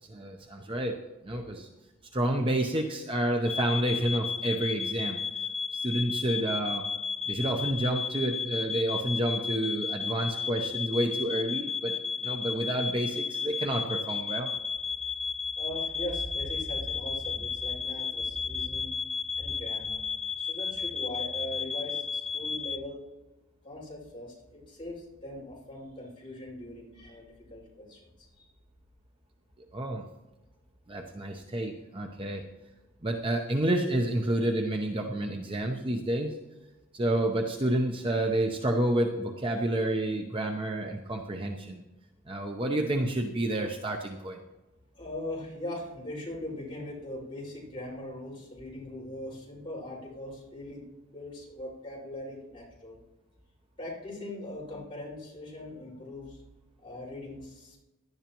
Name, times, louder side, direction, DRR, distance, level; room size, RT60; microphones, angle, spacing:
voice 1, 0.1-1.0 1.2-1.7 2.1-5.2 5.7-6.8 7.3-14.5 29.7-30.0 30.9-32.4 33.0-36.4 36.9-41.8 42.3-44.4, right 1 dB, 25° right, 2 dB, 0.7 m, -29 dB
sound 1, 3.4-22.8, left 6 dB, ahead, 0.3 m, -33 dB
voice 2, 15.6-20.0 20.4-23.0 23.6-28.4 45.0-53.0 53.8-56.4 56.8-57.8, left 1 dB, 25° left, -5 dB, 5.3 m, -40 dB
17.5 x 11.5 x 3.0 m, 1.0 s
head